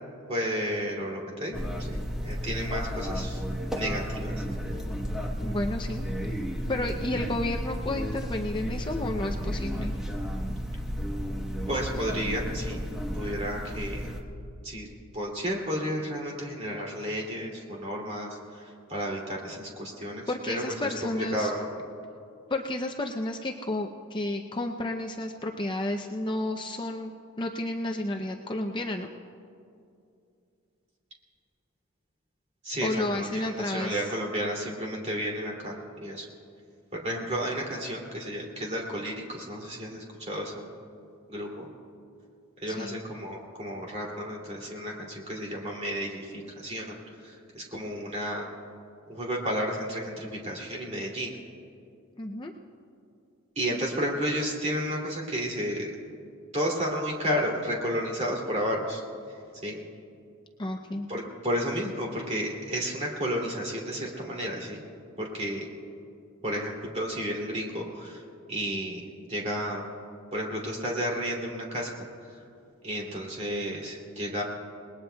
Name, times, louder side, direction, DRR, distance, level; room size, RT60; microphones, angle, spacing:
voice 1, 0.3-3.4 3.8-4.3 11.7-12.8 13.1-14.1 14.6-14.9 15.1-18.6 18.9-21.7 32.6-36.3 37.0-40.7 41.3-41.7 42.6-47.0 47.2-48.5 49.1-51.3 53.6-55.9 56.5-59.0 59.6-59.8 61.1-64.8 65.2-65.7 66.4-68.2 68.5-69.8 70.3-72.4 72.8-74.4, equal, 30° right, -1 dB, 2.6 m, -32 dB
sound 1, 1.5-14.2, equal, ahead, 1.0 m, -33 dB
voice 2, 5.4-6.4 6.7-10.0 20.3-21.5 22.5-27.1 27.4-29.1 32.8-34.1 42.7-43.0 52.2-52.5 60.6-61.1, left 1 dB, 20° left, 3 dB, 0.5 m, -31 dB
29.0 x 20.0 x 2.3 m, 2.5 s
head